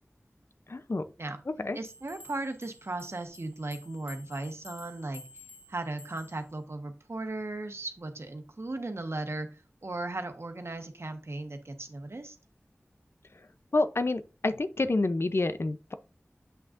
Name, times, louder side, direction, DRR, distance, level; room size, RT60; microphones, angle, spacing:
voice 1, 0.7-1.0 1.6-1.8 13.7-15.9, left 2 dB, 60° left, 0.6 m, -28 dB
voice 2, 1.7-5.2 5.7-12.4, right 2 dB, 65° right, 1.2 m, -37 dB
sound 1, 1.8-6.5, left 2 dB, 30° right, 2.3 m, -52 dB
7.9 x 6.3 x 2.5 m
wide cardioid pair, 50°, 5 cm